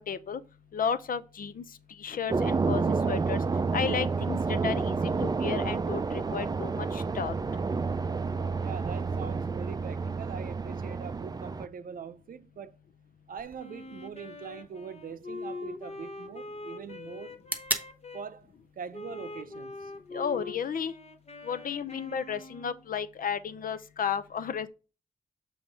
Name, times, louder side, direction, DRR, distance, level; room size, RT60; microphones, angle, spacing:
voice 1, 0.1-0.4 0.7-1.6 2.0-3.4 3.7-7.3 20.1-20.9 21.4-24.7, left 7 dB, 75° left, 0.6 m, -33 dB
sound 1, 2.3-11.7, right 4 dB, 25° right, 0.3 m, -29 dB
voice 2, 8.6-12.8 13.3-17.4 18.1-18.5 18.8-19.9 21.6-21.7, right 6 dB, 75° right, 0.5 m, -42 dB
sound 2, 13.4-21.4, right 2 dB, 10° right, 1.1 m, -42 dB
Wind instrument woodwind instrument, 13.6-18.3 18.9-22.9, left 3 dB, 45° left, 0.9 m, -43 dB
7.0 x 3.1 x 5.2 m
wide cardioid pair, 100°, 15 cm